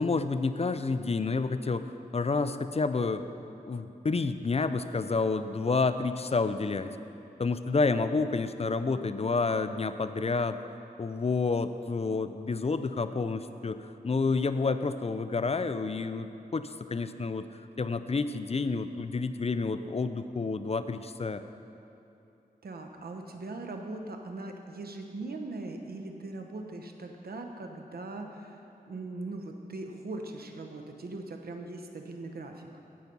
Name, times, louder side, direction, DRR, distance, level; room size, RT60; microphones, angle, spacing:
voice 1, 0.0-3.3 3.7-6.9 7.4-10.6 11.0-17.5 17.8-21.4, left 4 dB, 40° left, 11 dB, 0.5 m, -29 dB
voice 2, 22.6-32.7, right 2 dB, 80° right, 4 dB, 1.0 m, -40 dB
16.0 x 5.9 x 5.4 m, 2.8 s
wide cardioid pair, 55°, 16 cm